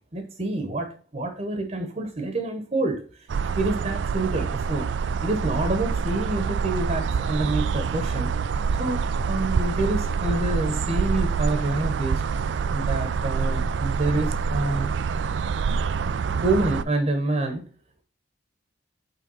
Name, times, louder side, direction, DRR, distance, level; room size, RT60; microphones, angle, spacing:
voice 1, 0.1-3.0 3.4-4.9 5.2-8.3 8.7-12.2 12.7-14.9 16.4-17.6, right 2 dB, 40° right, 6 dB, 1.0 m, -27 dB
sound 1, 3.3-16.8, right 5 dB, 70° right, 0.3 m, -26 dB
8.6 x 3.5 x 5.4 m, 0.40 s
head